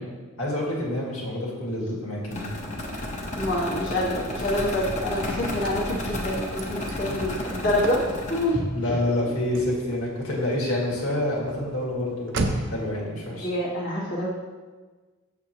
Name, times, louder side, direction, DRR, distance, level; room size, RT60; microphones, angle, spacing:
voice 1, 0.0-2.5 7.1-7.2 8.7-13.5, left 1 dB, 75° left, -3 dB, 1.8 m, -28 dB
sound 1, 2.3-8.4, left 1 dB, 30° left, 0.8 m, -32 dB
voice 2, 3.3-8.0 8.3-8.9 13.4-14.3, left 1 dB, 55° left, -5 dB, 1.4 m, -26 dB
Car / Slam, 4.2-12.9, right 2 dB, 55° right, 0.6 m, -37 dB
6.7 x 6.5 x 2.9 m, 1.3 s
head